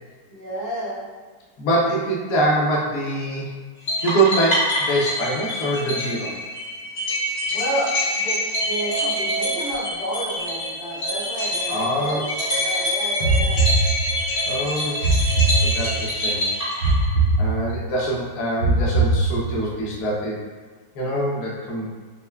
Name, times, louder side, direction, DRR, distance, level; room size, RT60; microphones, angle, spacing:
voice 1, 0.3-1.0 7.5-12.2 12.5-13.6, right 1 dB, 85° left, -8 dB, 2.1 m, -30 dB
voice 2, 1.6-3.5 4.0-6.3 11.7-12.3 14.5-16.6 17.4-20.4 20.9-22.0, right 1 dB, 60° left, -3 dB, 1.0 m, -24 dB
sound 1, 3.9-17.3, left 1 dB, 35° left, 1.6 m, -26 dB
sound 2, 13.2-14.4 15.0-16.2 16.8-18.0 18.6-19.8, right 2 dB, 70° right, 0.9 m, -21 dB
5.4 x 2.2 x 2.2 m, 1.5 s
omnidirectional pair, 2.1 m